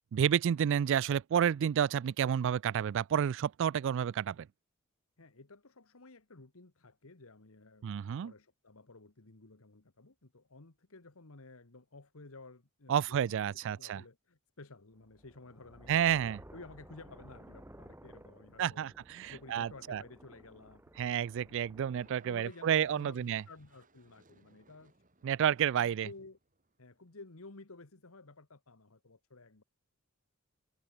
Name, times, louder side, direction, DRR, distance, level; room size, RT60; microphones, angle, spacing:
voice 1, 0.1-4.5 7.8-8.3 12.9-14.0 15.9-16.4 18.6-20.0 21.0-23.4 25.2-26.1, right 9 dB, 55° right, 0.3 m, -30 dB
voice 2, 5.2-16.0 16.5-18.9 19.3-20.8 21.4-24.9 25.8-26.4 26.8-29.6, left 3 dB, 70° left, 1.5 m, -53 dB
sound 1, 15.0-22.2, right 1 dB, 10° right, 1.7 m, -56 dB
sound 2, 21.9-27.3, right 3 dB, 35° right, 5.5 m, -67 dB
head